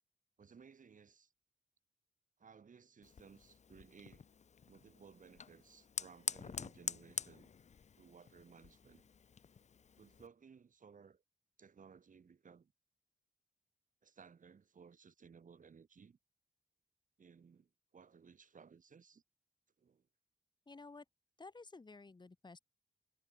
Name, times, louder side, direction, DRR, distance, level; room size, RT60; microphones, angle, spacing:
voice 1, 0.4-1.3 2.4-4.3 4.7-7.5 8.0-9.0 10.0-11.2 11.6-12.7 14.0-16.2 17.2-19.2 19.8-20.1, right 6 dB, 55° right, 6.7 m, -60 dB
Fire, 3.0-10.3, left 6 dB, 45° left, 0.8 m, -47 dB
voice 2, 20.7-21.0 21.4-22.6, left 3 dB, 25° left, 4.6 m, -53 dB
wide cardioid pair, 135°, 16 cm